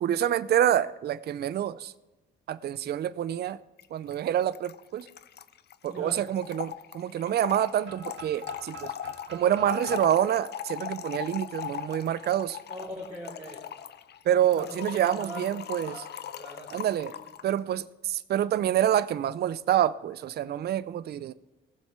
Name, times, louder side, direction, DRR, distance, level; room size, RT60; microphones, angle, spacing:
voice 1, 0.0-1.9 2.5-3.6 3.9-5.1 5.8-8.9 9.3-12.6 14.3-15.9 16.7-17.1 17.4-21.3, right 11 dB, 55° right, 0.5 m, -27 dB
Trickle dribble / Fill (with liquid), 3.8-3.9 4.1-4.2 4.4-17.5, left 10 dB, 55° left, 0.6 m, -39 dB
voice 2, 5.8-6.3 12.7-13.7 14.3-17.3, right 1 dB, 20° right, 3.9 m, -42 dB
sound 1, 7.8-11.7, right 5 dB, 75° right, 1.7 m, -49 dB
18.0 x 7.3 x 4.4 m
cardioid pair, 90°, 20 cm